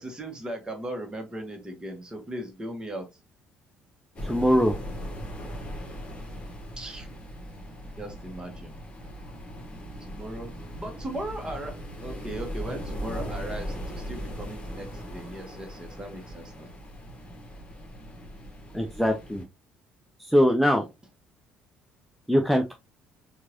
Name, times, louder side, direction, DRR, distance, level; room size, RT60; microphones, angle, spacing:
voice 1, 0.0-3.1 6.8-7.1 8.0-8.7 10.0-11.7 12.0-16.7, right 1 dB, 20° right, 1.3 m, -38 dB
sound 1, 4.2-19.4, equal, 25° left, 1.3 m, -39 dB
voice 2, 4.2-4.8 18.7-19.4 20.2-20.9 22.3-22.7, equal, ahead, 0.5 m, -22 dB
4.5 x 2.5 x 2.9 m
figure-of-eight pair, 50°, 5 cm